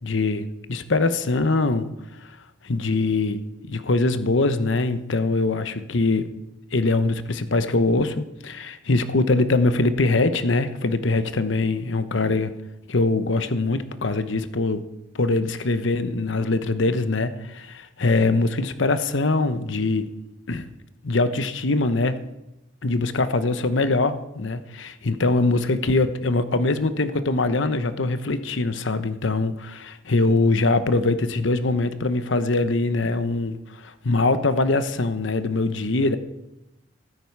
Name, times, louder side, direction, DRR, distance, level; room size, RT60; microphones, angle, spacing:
voice 1, 0.0-1.9 2.2-2.4 2.6-3.4 3.7-6.3 6.7-12.5 12.9-14.8 15.1-20.1 20.5-20.7 21.0-22.2 22.8-36.2, left 2 dB, 75° left, 12 dB, 0.9 m, -23 dB
15.5 x 13.0 x 4.7 m, 0.94 s
head